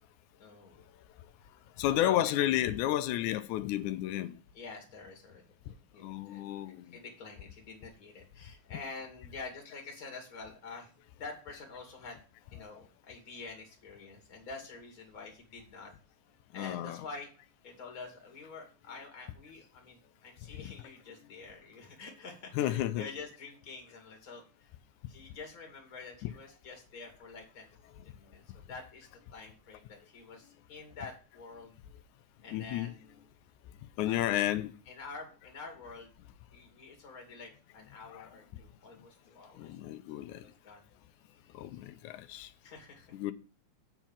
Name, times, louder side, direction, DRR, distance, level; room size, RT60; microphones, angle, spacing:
voice 1, 0.4-0.9 1.9-2.3 4.5-6.5 6.9-12.2 12.5-15.9 16.5-17.3 17.6-24.7 25.1-27.7 28.0-31.7 32.4-33.2 34.0-34.4 34.9-36.1 36.5-39.7 40.3-40.8 42.6-43.1, left 4 dB, 30° left, 2.3 m, -47 dB
voice 2, 1.8-4.4 6.0-7.0 16.5-17.1 20.5-20.7 22.5-23.1 26.2-26.3 32.5-32.9 34.0-34.7 38.1-38.3 39.6-40.5 41.5-42.5 43.1-43.3, left 13 dB, 80° left, 2.0 m, -32 dB
7.9 x 4.6 x 7.2 m
omnidirectional pair, 3.5 m